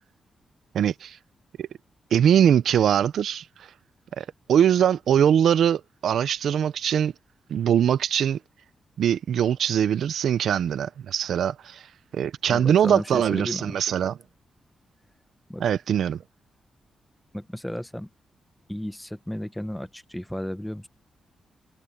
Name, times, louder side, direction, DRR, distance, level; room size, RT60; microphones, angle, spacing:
voice 1, 0.7-1.2 1.6-1.7 2.1-3.7 4.2-7.1 7.5-8.4 9.0-11.9 12.1-14.2 15.6-16.2, right 9 dB, 80° right, 0.5 m, -22 dB
voice 2, 12.5-13.8 15.5-15.6 17.3-18.1 18.7-20.9, left 1 dB, 5° left, 0.9 m, -33 dB
wide cardioid pair, 130°, 0 cm